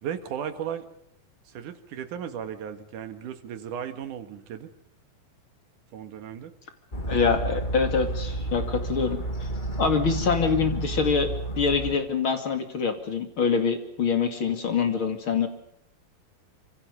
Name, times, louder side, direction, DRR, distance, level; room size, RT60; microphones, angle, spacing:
voice 1, 0.0-0.8 1.5-4.7 5.9-6.5, right 9 dB, 65° right, 8 dB, 3.0 m, -35 dB
sound 1, 6.9-12.0, right 2 dB, 20° left, 1.4 m, -31 dB
voice 2, 7.1-9.2 9.8-15.5, left 5 dB, 40° left, 6 dB, 2.8 m, -25 dB
26.5 x 25.5 x 5.3 m, 0.70 s
omnidirectional pair, 4.2 m